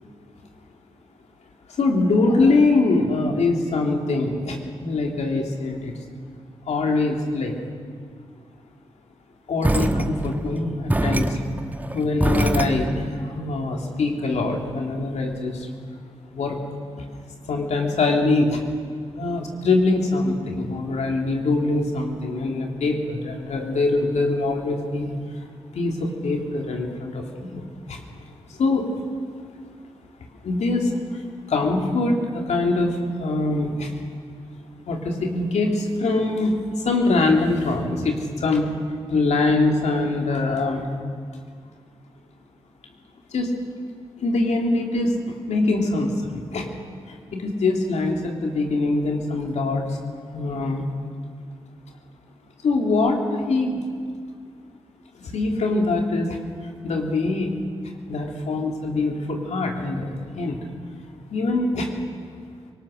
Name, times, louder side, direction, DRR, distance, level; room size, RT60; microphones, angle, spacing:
voice 1, 1.7-6.0 6.7-7.5 9.5-11.4 11.9-15.7 16.3-16.6 17.0-17.1 17.5-18.6 19.1-25.5 25.7-28.0 28.5-28.9 30.4-33.9 34.8-40.9 43.3-43.5 44.2-46.7 47.1-50.0 50.3-50.8 52.6-53.8 55.1-56.4 56.8-57.6 58.1-60.6 61.3-61.9, left 2 dB, 80° left, 1 dB, 2.9 m, -23 dB
sound 1, 9.6-13.1, right 1 dB, 15° right, 1.2 m, -24 dB
24.0 x 19.0 x 6.5 m, 2.1 s
cardioid pair, 50°, 12 cm